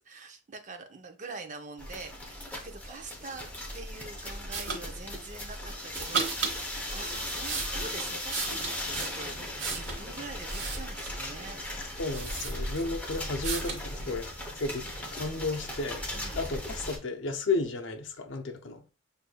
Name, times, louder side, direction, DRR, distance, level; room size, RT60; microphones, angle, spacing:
voice 1, 0.0-3.5 3.7-11.6 16.1-16.5, right 3 dB, 40° right, 0.6 m, -44 dB
sound 1, 1.8-17.0, left 1 dB, 10° left, 0.7 m, -37 dB
sound 2, 4.5-4.8 5.9-6.6 7.2-10.0 10.5-11.3 11.8-11.9 12.1-13.0 13.4-13.8, right 4 dB, 65° right, 1.1 m, -34 dB
voice 2, 12.0-14.9 15.1-16.1 16.3-18.9, left 3 dB, 70° left, 0.6 m, -33 dB
6.3 x 2.6 x 2.2 m
head